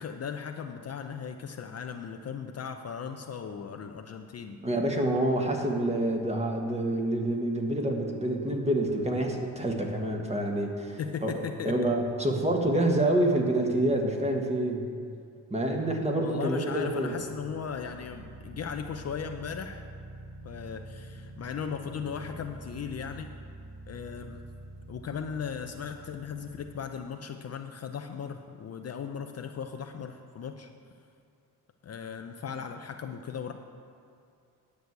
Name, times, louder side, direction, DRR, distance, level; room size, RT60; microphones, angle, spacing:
voice 1, 0.0-4.6 11.0-11.7 16.2-19.8 20.4-23.3 23.9-24.4 24.9-30.7 31.8-33.5, left 7 dB, 40° left, 5 dB, 0.6 m, -37 dB
voice 2, 4.6-11.3 11.6-14.9 15.5-17.1, right 1 dB, 15° right, 1 dB, 1.5 m, -27 dB
sound 1, 16.7-26.7, right 1 dB, 60° right, 1.4 m, -47 dB
10.5 x 6.3 x 8.2 m, 2.5 s
cardioid pair, 115°, 38 cm